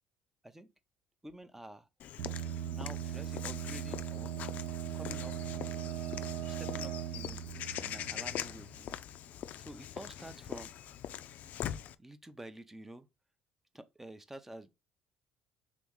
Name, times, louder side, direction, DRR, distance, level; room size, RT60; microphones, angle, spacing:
voice 1, 1.2-1.9 2.7-4.4 4.9-5.4 6.4-7.4 7.8-9.0 9.6-10.7 12.0-13.1 13.7-14.7, right 1 dB, 10° right, 0.6 m, -49 dB
Walk footsteps / Bird vocalization bird call bird song, 2.0-11.9, left 11 dB, 60° left, 0.3 m, -42 dB
sound 1, 2.2-8.8, right 11 dB, 75° right, 0.5 m, -39 dB
3.6 x 2.9 x 3.7 m
supercardioid pair, 90°, 3 cm